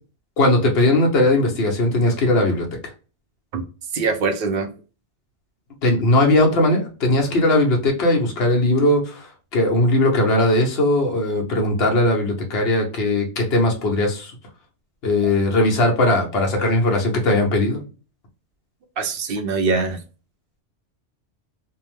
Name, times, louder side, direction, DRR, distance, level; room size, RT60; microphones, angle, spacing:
voice 1, 0.4-2.7 5.8-14.3 15.0-17.8, left 1 dB, 60° left, 1 dB, 1.1 m, -19 dB
voice 2, 3.9-4.7 16.1-16.6 19.0-20.0, right 4 dB, 60° right, 6 dB, 0.7 m, -24 dB
2.8 x 2.0 x 3.0 m, 0.35 s
omnidirectional pair, 1.2 m